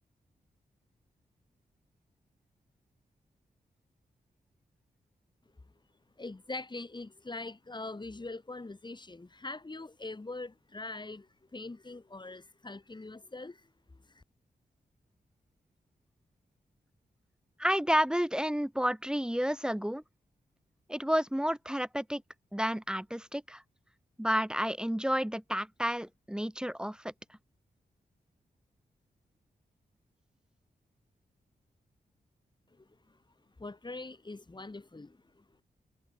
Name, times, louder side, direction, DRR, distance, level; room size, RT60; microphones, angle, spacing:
voice 1, 6.2-14.2 32.8-32.9 33.6-35.4, left 2 dB, 30° left, 3.7 m, -43 dB
voice 2, 17.6-20.0 20.9-22.2 22.5-23.6 24.2-27.1, equal, 5° right, 1.8 m, -30 dB
cardioid pair, 65°, 16 cm